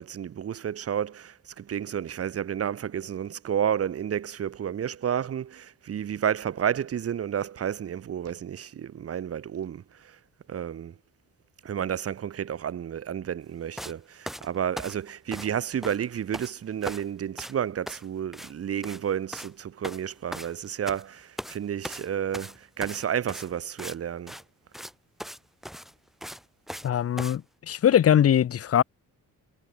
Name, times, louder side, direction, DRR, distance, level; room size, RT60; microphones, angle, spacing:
voice 1, 0.0-10.2 10.5-11.0 11.6-24.4, right 9 dB, 45° right, 1.6 m, -31 dB
sound 1, 13.8-14.0 14.3-15.6 15.8-16.5 16.8-17.1 17.4-17.6 17.9-18.1 18.3-18.5 18.8-19.0 19.3-19.5 19.8-21.0 21.4-21.6 21.8-24.0 24.3-24.4 24.7-24.9 25.2-25.4 25.6-26.9 27.2-27.4, equal, ahead, 4.0 m, -39 dB
voice 2, 26.8-28.8, left 10 dB, 45° left, 1.0 m, -21 dB
cardioid pair, 150°, 33 cm